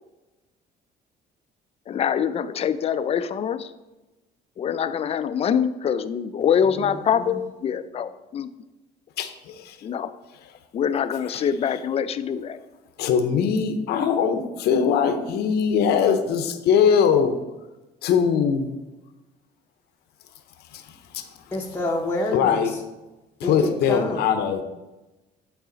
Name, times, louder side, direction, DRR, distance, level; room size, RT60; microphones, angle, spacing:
voice 1, 1.9-3.7 4.6-8.5 9.8-10.1 10.7-12.6, left 8 dB, 35° left, 12 dB, 0.4 m, -24 dB
voice 2, 9.2-9.8 13.0-17.3 18.0-18.7 20.7-21.2 22.3-22.7 23.4-24.6, left 7 dB, 75° left, 8 dB, 0.7 m, -21 dB
voice 3, 21.5-22.6 23.4-24.2, left 2 dB, 10° left, -2 dB, 0.8 m, -27 dB
8.3 x 4.0 x 3.9 m, 1.1 s
cardioid pair, 110°, 17 cm